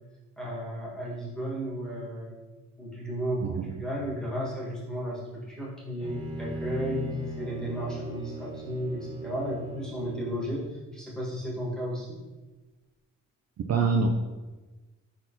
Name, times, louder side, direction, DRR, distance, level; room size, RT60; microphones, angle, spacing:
voice 1, 0.4-2.4 2.8-12.2, equal, ahead, -6 dB, 1.5 m, -34 dB
voice 2, 3.4-3.7 13.7-14.1, right 4 dB, 50° right, 3 dB, 0.4 m, -25 dB
Bowed string instrument, 6.0-10.8, right 1 dB, 15° right, 1.0 m, -40 dB
4.2 x 4.0 x 2.8 m, 1.2 s
cardioid pair, 75°, 33 cm